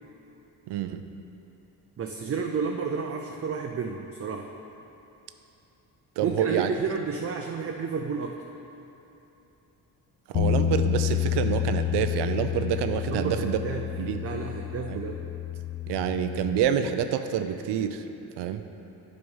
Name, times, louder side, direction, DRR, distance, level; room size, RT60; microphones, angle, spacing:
voice 1, 0.7-1.0 6.2-6.7 10.3-13.6 14.0-14.2 14.9-15.0 15.9-18.0 18.4-18.6, right 9 dB, 85° right, 9 dB, 0.5 m, -27 dB
voice 2, 2.0-4.5 6.2-8.3 13.1-13.9 14.2-15.2, right 5 dB, 35° right, 2 dB, 0.5 m, -31 dB
Bass guitar, 10.3-16.6, left 10 dB, 55° left, 0.6 m, -29 dB
7.9 x 5.0 x 5.5 m, 3.0 s
cardioid pair, 80°, 40 cm